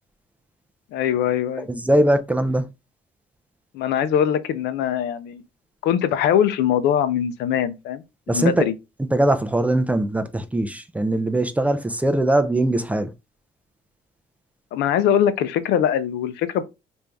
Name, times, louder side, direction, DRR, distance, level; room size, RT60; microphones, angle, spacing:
voice 1, 0.9-1.7 3.7-5.4 5.8-8.7 14.7-16.6, left 9 dB, 80° left, 0.5 m, -22 dB
voice 2, 1.7-2.7 8.3-8.7 9.1-13.1, right 1 dB, 10° right, 0.4 m, -21 dB
3.2 x 2.6 x 3.4 m
cardioid pair, 110°, 17 cm